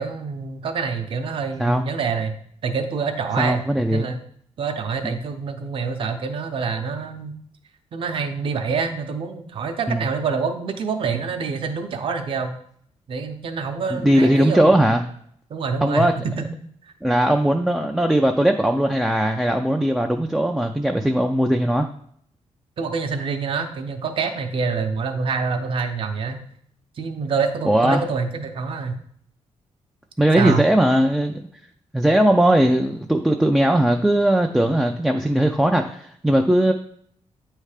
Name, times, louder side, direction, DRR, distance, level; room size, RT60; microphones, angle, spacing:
voice 1, 0.0-2.4 2.6-3.6 3.9-4.2 4.6-7.3 7.9-12.5 13.1-15.0 15.5-16.0 16.4-16.5 22.8-26.4 27.0-29.0 30.4-30.6, right 5 dB, 45° right, 5 dB, 0.7 m, -26 dB
voice 2, 3.4-4.1 5.0-5.2 9.9-10.1 13.9-15.0 15.8-16.1 17.0-21.9 27.7-28.0 30.2-31.4 31.9-36.7, right 1 dB, 5° right, 3 dB, 0.3 m, -19 dB
8.8 x 3.3 x 4.9 m, 0.65 s
wide cardioid pair, 160°, 12 cm